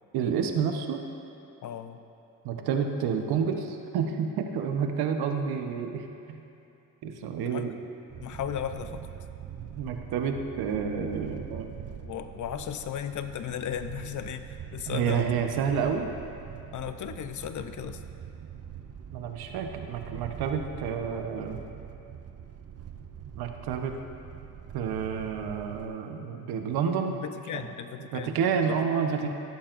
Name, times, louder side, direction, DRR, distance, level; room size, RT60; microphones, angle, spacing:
voice 1, 0.1-1.0 2.4-6.4 7.0-7.7 9.7-11.8 14.9-16.1 19.1-21.6 23.3-23.9 24.7-27.2 27.5-27.7 28.0-29.3, right 7 dB, 80° right, 4 dB, 1.0 m, -29 dB
voice 2, 1.6-2.0 7.4-7.7 8.2-9.1 12.0-15.4 15.8-15.9 16.7-18.0 27.1-28.4, left 9 dB, 50° left, 9 dB, 0.7 m, -36 dB
sound 1, 8.1-25.9, right 8 dB, 40° right, 0.6 m, -43 dB
15.0 x 11.5 x 2.6 m, 2.8 s
cardioid pair, 90°, 37 cm